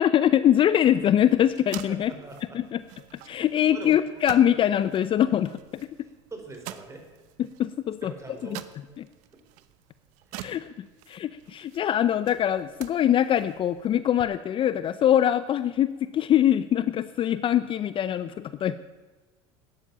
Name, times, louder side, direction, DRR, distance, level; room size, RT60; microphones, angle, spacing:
voice 1, 0.0-2.1 2.5-2.8 3.3-5.6 7.4-8.1 10.4-10.7 11.1-18.8, left 10 dB, 35° left, 14 dB, 0.6 m, -23 dB
sound 1, 0.9-14.2, right 14 dB, 60° right, 1.0 m, -47 dB
voice 2, 1.9-2.6 3.7-4.0 6.0-7.0 8.0-8.6 10.3-10.5, right 3 dB, 20° right, 4 dB, 4.1 m, -42 dB
13.5 x 10.0 x 8.8 m, 1.3 s
hypercardioid pair, 95°, 14 cm